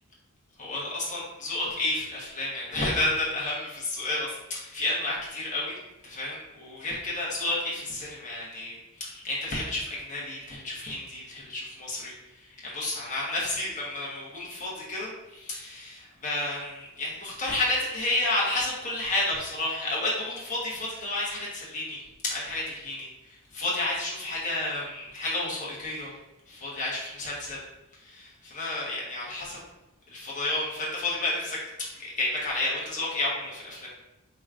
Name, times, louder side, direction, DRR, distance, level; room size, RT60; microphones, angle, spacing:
voice 1, 0.6-5.8 6.0-22.0 22.2-26.1 26.5-27.6 28.0-29.6 30.1-31.6 31.9-33.9, left 2 dB, 35° left, -5 dB, 1.1 m, -31 dB
4.6 x 3.0 x 2.5 m, 0.98 s
head